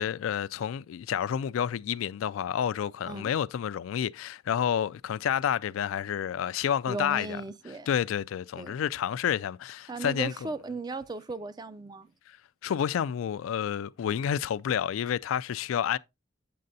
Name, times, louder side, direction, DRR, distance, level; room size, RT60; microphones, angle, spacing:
voice 1, 0.0-7.4 7.9-10.5 12.6-16.0, left 9 dB, 85° left, 0.3 m, -29 dB
voice 2, 6.9-7.9 8.6-8.8 9.9-12.1, right 3 dB, 20° right, 0.3 m, -37 dB
7.7 x 7.5 x 2.7 m
head